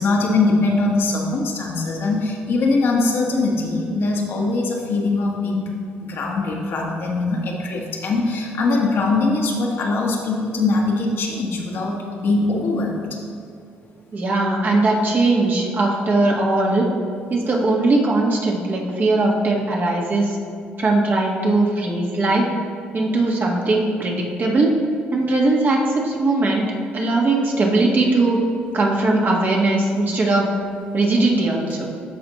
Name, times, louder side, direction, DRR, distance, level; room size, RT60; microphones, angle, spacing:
voice 1, 0.0-5.7 6.1-13.1, left 3 dB, 60° left, -2 dB, 1.3 m, -21 dB
voice 2, 14.1-16.9 17.3-20.4 20.8-22.5 22.9-24.7 25.1-26.6 26.9-28.4 28.7-30.5 30.9-31.9, right 2 dB, 45° right, -2 dB, 1.5 m, -19 dB
12.5 x 4.3 x 3.0 m, 2.3 s
supercardioid pair, 65°, 4 cm